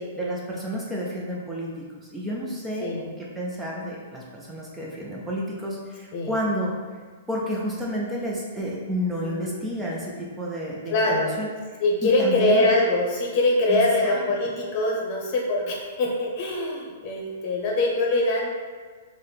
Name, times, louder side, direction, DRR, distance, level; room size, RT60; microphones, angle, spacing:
voice 1, 0.2-6.7 7.3-12.7 13.7-14.2, equal, 10° right, -4 dB, 0.4 m, -31 dB
voice 2, 2.8-3.1 6.1-6.3 9.2-9.6 10.9-11.3 11.8-18.5, left 2 dB, 45° left, -2 dB, 0.8 m, -23 dB
3.9 x 2.1 x 3.3 m, 1.5 s
hypercardioid pair, 140°, 0 cm